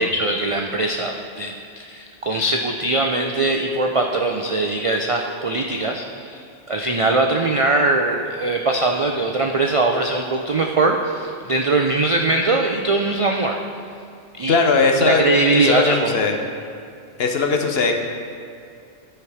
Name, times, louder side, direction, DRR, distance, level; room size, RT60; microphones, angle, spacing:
voice 1, 0.0-13.6 14.3-14.6 15.0-16.2, right 2 dB, 60° right, 2 dB, 0.3 m, -21 dB
voice 2, 14.5-15.2 15.5-16.3 17.2-18.0, left 4 dB, 60° left, 3 dB, 1.0 m, -19 dB
12.5 x 4.5 x 4.8 m, 2.5 s
omnidirectional pair, 1.2 m